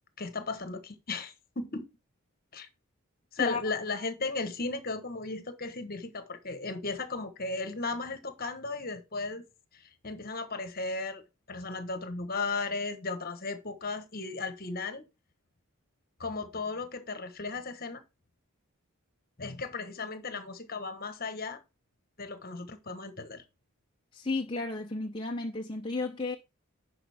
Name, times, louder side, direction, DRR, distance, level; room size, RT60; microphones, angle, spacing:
voice 1, 0.2-1.8 2.5-2.7 3.3-9.4 9.7-11.2 11.5-15.0 16.2-18.0 19.4-21.6 22.2-23.4, left 3 dB, 40° left, 1.2 m, -36 dB
voice 2, 24.1-26.4, left 3 dB, 20° left, 0.7 m, -33 dB
11.0 x 5.1 x 3.5 m
head